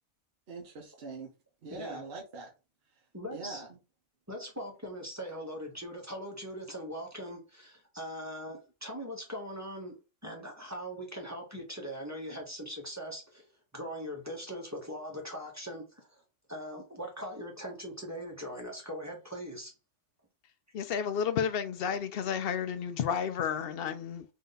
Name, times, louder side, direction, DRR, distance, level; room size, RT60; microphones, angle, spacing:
voice 1, 0.5-1.3 1.6-2.5 2.9-3.8, right 3 dB, 55° right, 1.0 m, -43 dB
voice 2, 3.1-3.6 4.3-13.4 13.7-16.2 16.5-19.7, equal, 15° right, 0.9 m, -41 dB
voice 3, 20.7-24.2, left 7 dB, 65° left, 0.7 m, -31 dB
3.8 x 2.6 x 3.8 m
omnidirectional pair, 1.2 m